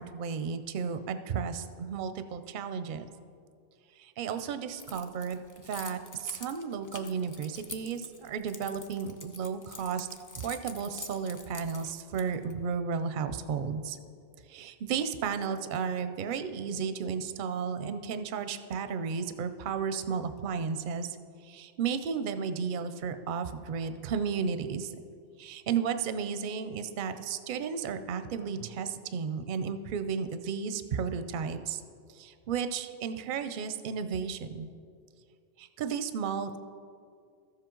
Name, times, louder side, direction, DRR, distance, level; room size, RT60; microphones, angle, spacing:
voice 1, 0.0-3.1 4.0-5.4 5.7-10.1 10.4-14.0 14.5-21.2 21.4-24.9 25.4-31.8 32.1-34.7 35.6-36.6, right 6 dB, 60° right, 10 dB, 0.6 m, -33 dB
Keys jangling, 4.8-12.5, left 3 dB, 25° left, 0.4 m, -45 dB
13.5 x 7.5 x 3.8 m, 2.3 s
omnidirectional pair, 1.1 m